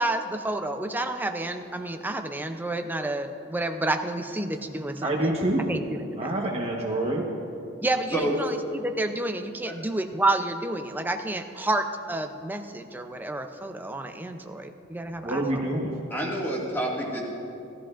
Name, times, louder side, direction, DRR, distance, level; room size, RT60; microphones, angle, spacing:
voice 1, 0.0-5.3 5.7-6.3 7.8-15.7, right 2 dB, 10° right, 6 dB, 0.5 m, -30 dB
voice 2, 5.0-5.7 6.2-7.2 15.2-16.0, right 1 dB, 30° right, -2 dB, 1.1 m, -27 dB
voice 3, 16.1-17.3, right 1 dB, 10° left, -3 dB, 2.0 m, -29 dB
17.5 x 13.5 x 2.5 m, 2.7 s
head